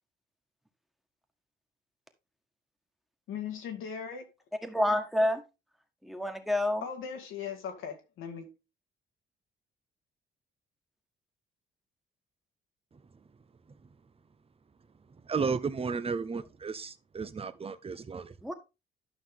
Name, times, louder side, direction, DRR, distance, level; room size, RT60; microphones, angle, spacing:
voice 1, 3.3-4.3 6.8-8.5, left 7 dB, 85° left, 2.4 m, -38 dB
voice 2, 4.6-5.4 6.0-6.8 18.4-18.5, left 1 dB, ahead, 1.7 m, -28 dB
voice 3, 12.9-13.2 13.7-13.9 15.1-18.3, right 5 dB, 30° right, 0.9 m, -34 dB
12.0 x 5.8 x 3.7 m
cardioid pair, 90°, 20 cm